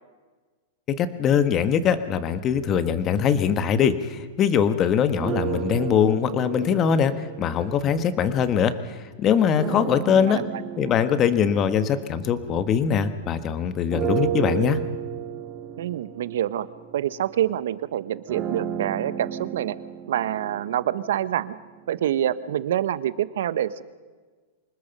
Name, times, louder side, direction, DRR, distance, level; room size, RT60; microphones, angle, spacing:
voice 1, 0.9-10.5 10.8-14.8, left 8 dB, 25° left, 11 dB, 1.4 m, -22 dB
sound 1, 5.2-8.7 9.5-13.3 13.9-21.9, right 10 dB, 30° right, 2.2 m, -33 dB
voice 2, 10.3-10.6 15.8-16.7 16.9-19.8 20.1-21.6 21.9-23.8, right 11 dB, 75° right, 15 dB, 1.1 m, -26 dB
26.0 x 20.5 x 5.5 m, 1.4 s
supercardioid pair, 150°, 0 cm